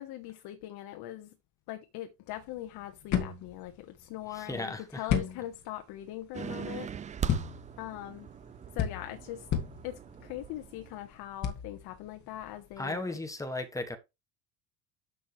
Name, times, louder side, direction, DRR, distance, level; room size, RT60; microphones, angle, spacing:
voice 1, 0.0-1.4 1.7-6.9 7.8-8.3 8.7-9.5 9.8-13.2, left 13 dB, 65° left, 1.4 m, -41 dB
sound 1, 2.3-13.1, left 8 dB, 45° left, 2.5 m, -36 dB
voice 2, 4.5-5.0 12.8-14.0, left 2 dB, 10° left, 1.4 m, -35 dB
sound 2, 6.3-11.2, right 8 dB, 20° right, 0.4 m, -41 dB
11.0 x 6.7 x 3.3 m
cardioid pair, 140°, 41 cm